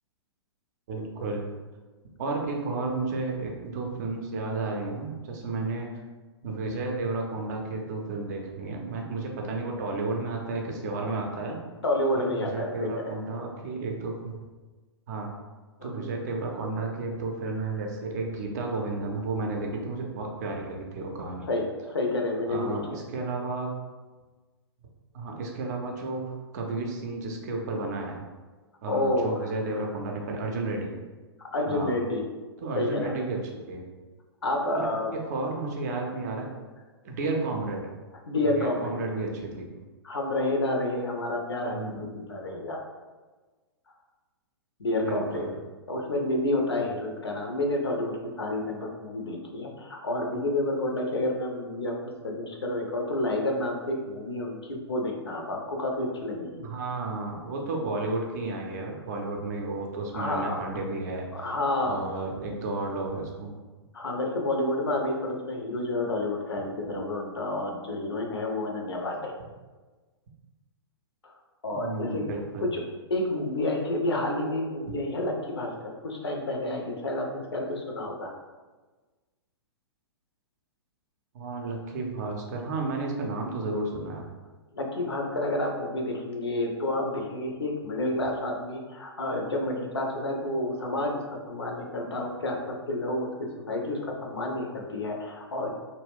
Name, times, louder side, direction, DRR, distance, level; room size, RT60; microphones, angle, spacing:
voice 1, 0.9-1.5 2.2-5.9 6.4-11.6 12.2-14.4 15.1-15.3 15.8-21.5 22.5-23.7 25.1-28.2 28.8-30.9 31.7-31.9 32.6-33.8 34.7-36.5 37.0-37.9 38.4-39.7 41.7-42.1 45.0-45.5 56.6-61.5 61.8-63.5 71.7-72.7 81.3-84.3, right 3 dB, 40° right, 1 dB, 0.5 m, -32 dB
voice 2, 11.8-13.2 15.8-16.0 21.5-23.0 28.9-29.5 31.4-32.2 32.7-33.1 34.4-35.1 38.3-39.0 40.0-42.8 44.8-45.5 45.9-52.0 52.2-56.7 60.1-60.6 61.3-62.0 63.9-69.3 71.2-71.3 71.6-72.3 72.6-72.8 73.1-78.3 84.7-95.7, left 1 dB, 70° left, 1 dB, 0.5 m, -29 dB
2.3 x 2.1 x 3.4 m, 1.3 s
figure-of-eight pair, 110°, 14 cm